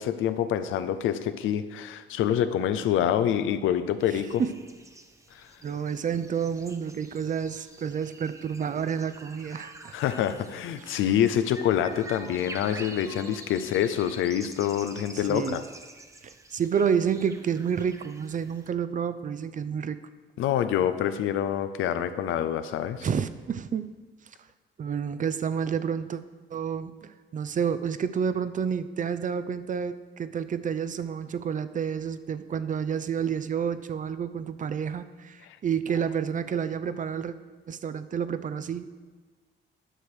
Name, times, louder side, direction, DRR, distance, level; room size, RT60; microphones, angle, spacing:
voice 1, 0.0-4.4 5.3-5.5 9.9-15.6 20.4-23.1 35.5-35.6, left 10 dB, 85° left, 11 dB, 0.6 m, -26 dB
sound 1, 4.0-18.7, right 2 dB, 15° right, 0.8 m, -47 dB
voice 2, 4.1-4.6 5.6-9.9 10.9-11.0 15.3-15.6 16.5-20.0 23.0-23.9 24.8-26.2 26.5-37.3 37.7-38.9, right 7 dB, 40° right, 13 dB, 0.5 m, -29 dB
10.0 x 6.1 x 4.9 m, 1.4 s
cardioid pair, 90°, 20 cm